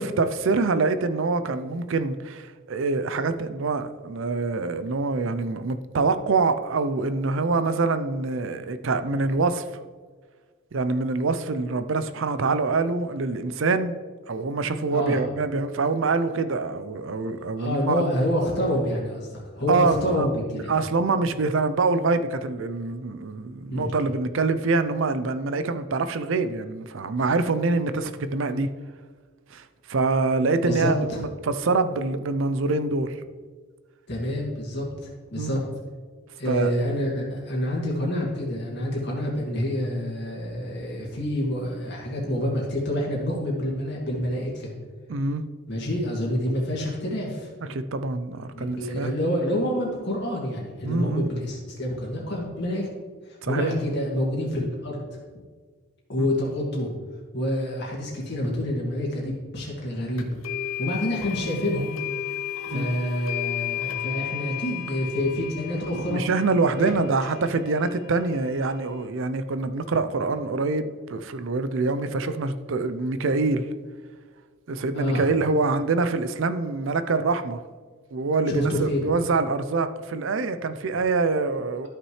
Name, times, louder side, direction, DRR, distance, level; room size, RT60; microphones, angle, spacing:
voice 1, 0.0-9.6 10.7-14.0 14.3-18.0 19.7-28.7 29.5-33.2 35.4-35.6 36.5-36.7 45.1-45.5 47.6-49.1 50.8-51.3 53.4-53.7 56.2-56.3 62.7-63.0 66.0-73.7 74.7-77.6 78.1-81.9, right 3 dB, 60° right, 0.5 m, -25 dB
voice 2, 14.9-15.2 17.6-20.7 23.7-23.9 30.6-31.2 34.1-34.9 35.3-35.6 36.4-44.7 45.7-47.5 48.5-52.9 53.4-55.2 56.1-56.9 57.3-60.3 60.8-61.9 62.7-66.2 66.8-67.0 74.9-75.2 78.5-79.0, left 1 dB, 50° left, 2.0 m, -27 dB
sound 1, 60.2-69.0, left 11 dB, 75° left, 0.9 m, -34 dB
13.0 x 5.9 x 3.2 m
head